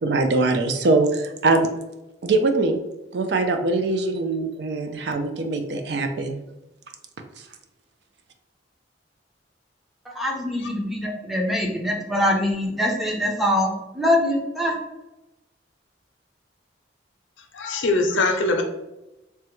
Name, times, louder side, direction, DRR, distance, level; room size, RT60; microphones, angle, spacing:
voice 1, 0.0-1.7 2.2-2.8 3.1-6.4, right 3 dB, 60° right, 5 dB, 0.4 m, -22 dB
voice 2, 10.1-14.8, left 1 dB, ahead, -2 dB, 0.5 m, -23 dB
voice 3, 17.5-18.6, left 2 dB, 90° left, 5 dB, 0.5 m, -22 dB
3.3 x 2.1 x 3.0 m, 0.94 s
head